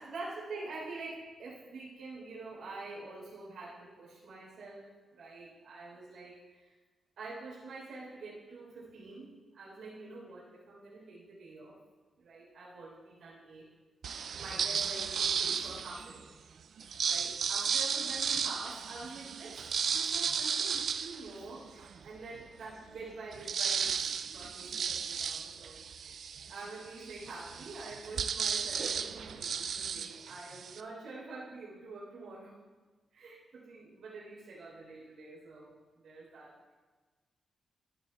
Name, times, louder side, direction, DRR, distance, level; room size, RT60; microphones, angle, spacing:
voice 1, 0.0-6.7 7.2-9.3 9.5-11.8 12.2-13.6 14.3-16.3 17.1-25.8 26.5-32.5 33.1-36.6, right 3 dB, 80° right, -5 dB, 3.7 m, -46 dB
sound 1, 14.0-16.2 16.8-22.0 22.5-22.6 22.8-30.8, right 7 dB, 65° right, 0.3 m, -34 dB
14.5 x 11.5 x 2.3 m, 1.3 s
wide cardioid pair, 155°, 0 cm